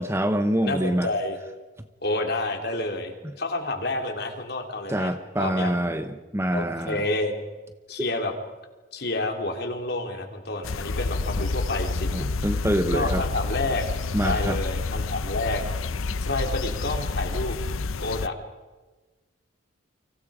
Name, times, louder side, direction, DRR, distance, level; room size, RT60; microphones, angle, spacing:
voice 1, 0.0-1.1 4.9-7.0 12.1-13.2 14.1-14.6, right 1 dB, 15° right, 9 dB, 1.0 m, -25 dB
voice 2, 0.6-1.4 2.0-5.1 5.4-5.8 6.5-7.3 7.9-8.3 8.9-12.3 12.8-13.9 14.2-15.9 16.2-17.6 18.0-18.4, left 2 dB, 50° left, 4 dB, 3.3 m, -29 dB
sound 1, 10.6-18.3, left 3 dB, 85° left, 0.7 m, -29 dB
30.0 x 25.0 x 5.1 m, 1.2 s
head